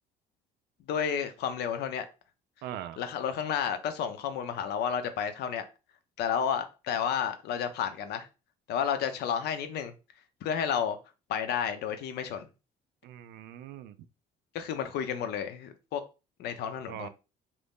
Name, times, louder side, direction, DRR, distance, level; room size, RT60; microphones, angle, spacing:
voice 1, 0.9-2.1 3.0-5.6 6.2-8.3 8.7-9.9 10.4-11.0 11.3-12.5 14.5-16.0 16.4-17.1, left 8 dB, 75° left, 0.6 m, -31 dB
voice 2, 2.6-3.0 13.0-14.0 16.9-17.1, right 11 dB, 80° right, 0.4 m, -41 dB
2.7 x 2.6 x 3.5 m
cardioid pair, 110°, 17 cm